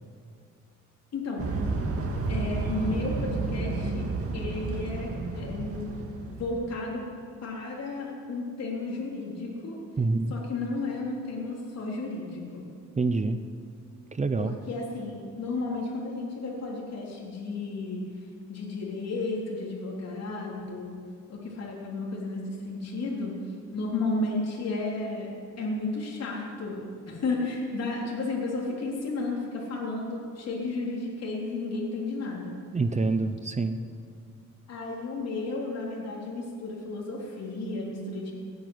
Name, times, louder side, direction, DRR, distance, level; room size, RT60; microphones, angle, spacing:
voice 1, 1.1-1.5 2.3-4.1 4.3-5.9 6.3-7.0 7.4-9.8 10.3-12.7 14.4-18.0 18.5-20.9 21.3-23.4 23.7-25.3 25.6-32.5 34.7-38.3, left 3 dB, 55° left, -3 dB, 3.7 m, -33 dB
sound 1, 1.4-6.8, right 3 dB, 50° right, 2.3 m, -31 dB
voice 2, 10.0-10.3 13.0-13.4 14.1-14.6 32.7-33.8, right 3 dB, 25° right, 9 dB, 0.8 m, -26 dB
17.5 x 9.2 x 7.9 m, 2.3 s
cardioid pair, 90°, 30 cm